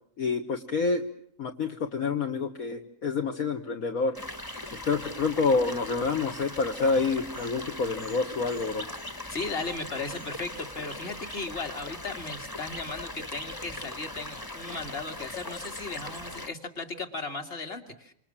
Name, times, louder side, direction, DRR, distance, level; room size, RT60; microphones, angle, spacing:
voice 1, 0.2-1.0 1.4-4.1 4.7-8.9, left 4 dB, 60° left, 3 dB, 1.8 m, -28 dB
sound 1, 4.1-16.5, left 1 dB, 15° left, 1.6 m, -40 dB
voice 2, 9.3-18.1, left 3 dB, 35° left, 5 dB, 2.6 m, -36 dB
28.0 x 27.0 x 7.4 m, 0.66 s
omnidirectional pair, 1.7 m